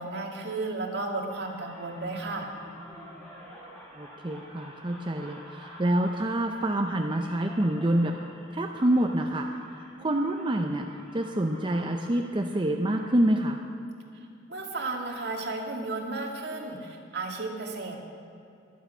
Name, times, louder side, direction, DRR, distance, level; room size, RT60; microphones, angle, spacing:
voice 1, 0.0-2.5 14.5-18.0, right 3 dB, 65° right, 1 dB, 2.2 m, -33 dB
sound 1, 1.3-13.3, equal, 5° left, 4.3 m, -49 dB
voice 2, 3.9-8.2 8.5-9.5 10.0-13.6, right 1 dB, 25° right, 3 dB, 0.6 m, -27 dB
23.0 x 8.3 x 5.6 m, 2.6 s
head